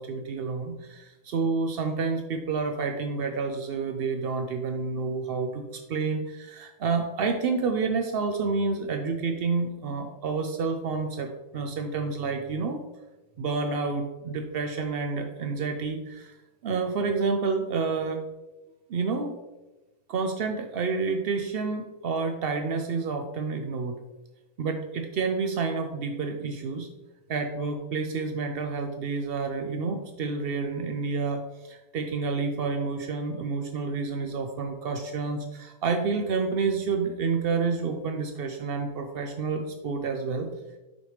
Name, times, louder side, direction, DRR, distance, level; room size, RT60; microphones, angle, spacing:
voice 1, 0.0-12.8 13.4-16.3 16.6-18.2 18.9-19.4 20.1-24.0 24.6-26.9 27.3-40.5, right 4 dB, 85° right, 5 dB, 0.5 m, -29 dB
6.2 x 5.2 x 3.2 m, 1.1 s
omnidirectional pair, 1.6 m